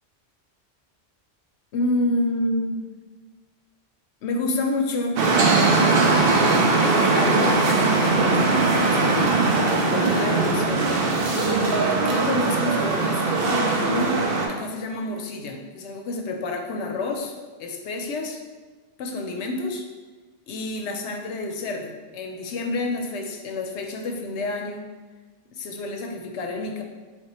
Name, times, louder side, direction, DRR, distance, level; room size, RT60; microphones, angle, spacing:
voice 1, 1.7-2.9 4.2-5.3 6.8-18.4 19.0-19.9 20.5-24.9 25.5-26.8, left 2 dB, 85° left, 3 dB, 0.9 m, -29 dB
sound 1, 5.2-14.5, right 3 dB, 65° right, 0.8 m, -20 dB
4.4 x 3.4 x 2.9 m, 1.3 s
omnidirectional pair, 1.1 m